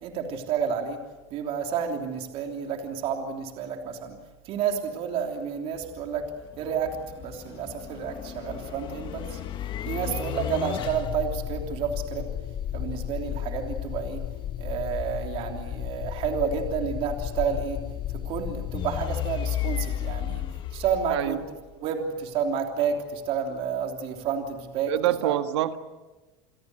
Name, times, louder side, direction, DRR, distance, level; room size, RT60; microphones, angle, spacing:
voice 1, 0.0-1.0 1.3-4.2 4.4-6.3 6.6-9.4 9.8-12.3 12.7-14.2 14.6-17.8 18.1-20.5 20.7-21.4 21.8-24.9 25.2-25.3, right 7 dB, 45° right, 3 dB, 3.3 m, -30 dB
sound 1, 5.8-21.7, left 11 dB, 35° left, 1.3 m, -33 dB
voice 2, 21.1-21.4 24.9-25.8, right 13 dB, 85° right, 9 dB, 1.7 m, -26 dB
29.0 x 22.0 x 7.9 m, 1.2 s
supercardioid pair, 145°, 14 cm